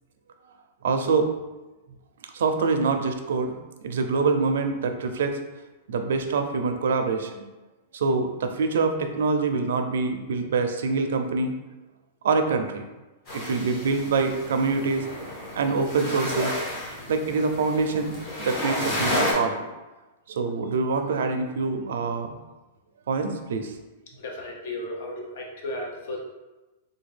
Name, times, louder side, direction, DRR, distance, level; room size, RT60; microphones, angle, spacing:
voice 1, 0.8-1.3 2.3-3.5 3.8-5.4 5.9-7.5 7.9-11.5 12.2-12.8 13.3-15.0 15.6-16.5 17.1-19.7 20.3-22.4 23.1-23.7, right 4 dB, 80° right, 6 dB, 0.4 m, -25 dB
sound 1, 13.3-19.3, left 1 dB, 30° left, 0.9 m, -31 dB
voice 2, 24.2-26.2, left 1 dB, 60° left, 0 dB, 0.8 m, -34 dB
3.4 x 2.2 x 3.3 m, 1.1 s
supercardioid pair, 170°, 0 cm